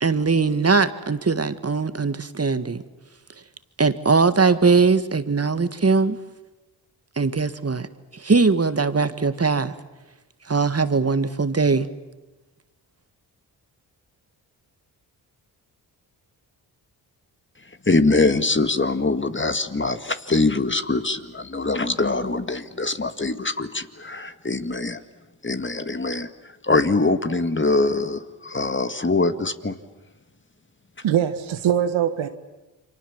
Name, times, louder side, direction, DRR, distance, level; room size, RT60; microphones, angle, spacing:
voice 1, 0.0-2.8 3.8-6.2 7.2-7.9 8.1-9.7 10.5-11.9, right 4 dB, 30° right, 12 dB, 1.8 m, -20 dB
voice 2, 17.7-25.0 25.4-29.8, left 3 dB, 25° left, 10 dB, 1.9 m, -23 dB
voice 3, 31.0-32.3, right 10 dB, 85° right, 9 dB, 1.6 m, -22 dB
29.5 x 24.5 x 7.3 m, 1.1 s
supercardioid pair, 45°, 45 cm